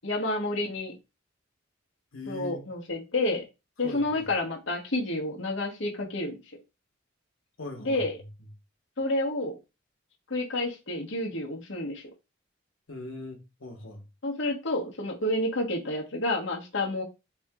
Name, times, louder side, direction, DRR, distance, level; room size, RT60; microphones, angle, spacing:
voice 1, 0.0-0.9 2.3-3.4 3.8-6.4 7.8-8.1 9.0-9.6 10.3-12.0 14.2-17.0, left 2 dB, 65° left, 1.1 m, -29 dB
voice 2, 2.1-2.6 3.8-4.3 7.6-8.0 12.9-14.0, left 2 dB, 85° left, 1.2 m, -40 dB
3.5 x 2.8 x 3.6 m
head